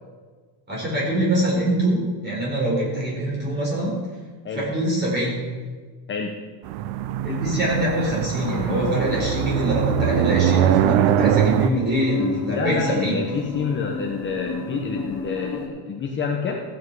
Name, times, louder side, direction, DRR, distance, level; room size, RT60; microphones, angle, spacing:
voice 1, 0.7-3.9 4.5-5.4 7.2-13.2, right 1 dB, 25° right, -4 dB, 4.3 m, -24 dB
sound 1, 6.7-11.7, right 12 dB, 85° right, 0.7 m, -22 dB
sound 2, 8.4-15.7, left 4 dB, 45° left, 2.2 m, -31 dB
voice 2, 12.5-16.6, left 5 dB, 25° left, 0 dB, 0.9 m, -27 dB
14.5 x 8.3 x 4.7 m, 1.5 s
cardioid pair, 170°, 44 cm